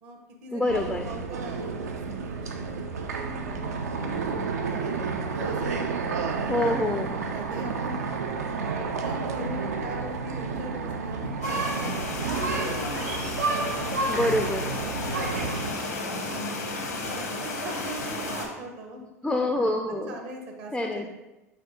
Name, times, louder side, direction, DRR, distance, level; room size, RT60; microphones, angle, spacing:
voice 1, 0.0-8.0 8.6-14.0 14.7-15.7 16.0-19.0 19.9-21.1, right 1 dB, 55° right, 3 dB, 0.9 m, -41 dB
voice 2, 0.5-1.1 6.5-7.1 14.1-14.8 19.2-20.2 20.7-21.1, left 1 dB, 5° left, 4 dB, 0.3 m, -26 dB
sound 1, 0.7-15.7, right 4 dB, 75° right, 0.4 m, -31 dB
sound 2, 11.4-18.5, left 2 dB, 80° left, 0.8 m, -33 dB
4.5 x 4.2 x 2.8 m, 1.0 s
figure-of-eight pair, 80°, 9 cm